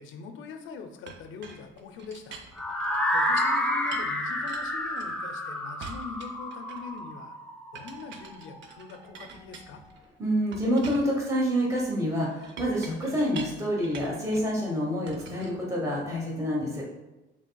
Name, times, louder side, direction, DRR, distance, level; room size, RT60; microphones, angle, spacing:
voice 1, 0.0-2.4 3.1-7.4 7.7-9.8, left 5 dB, 80° left, 7 dB, 0.5 m, -43 dB
Chink clink, 1.1-3.6 3.9-5.4 5.8-7.0 7.7-10.0 10.5-14.5 15.1-16.2, right 5 dB, 70° right, 0.5 m, -46 dB
sound 1, 2.6-8.5, left 1 dB, 5° left, 0.5 m, -29 dB
voice 2, 10.2-16.8, equal, 15° right, -3 dB, 1.0 m, -27 dB
5.0 x 3.3 x 2.2 m, 1.0 s
cardioid pair, 90°, 20 cm